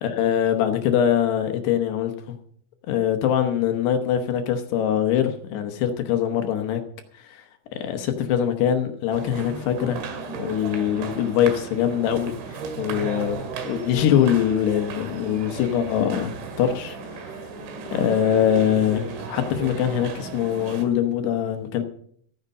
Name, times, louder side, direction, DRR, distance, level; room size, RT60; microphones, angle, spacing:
voice 1, 0.0-2.4 2.9-6.8 7.2-7.4 7.7-10.0 10.4-16.3 16.6-17.3 17.9-21.8, left 9 dB, 70° left, 6 dB, 2.8 m, -23 dB
sound 1, 9.1-20.9, right 4 dB, 75° right, 4.1 m, -35 dB
15.0 x 9.6 x 5.4 m, 0.63 s
omnidirectional pair, 5.5 m